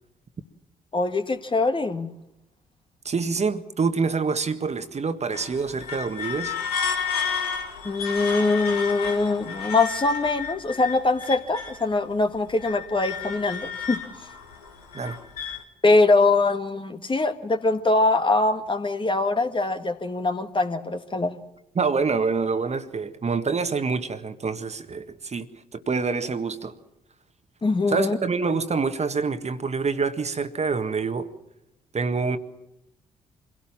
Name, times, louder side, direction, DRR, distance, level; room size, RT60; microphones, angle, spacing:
voice 1, 0.9-2.1 7.8-14.0 15.8-21.3 27.6-28.2, left 3 dB, 25° left, 7 dB, 1.8 m, -23 dB
voice 2, 3.0-6.6 14.9-15.2 21.7-25.5 25.7-26.7 27.9-31.3 31.9-32.4, right 4 dB, 35° right, 9 dB, 1.7 m, -26 dB
sound 1, 5.3-11.9 12.3-15.6, left 6 dB, 85° left, 1.9 m, -32 dB
25.5 x 17.5 x 7.4 m, 0.88 s
figure-of-eight pair, 40°, 19 cm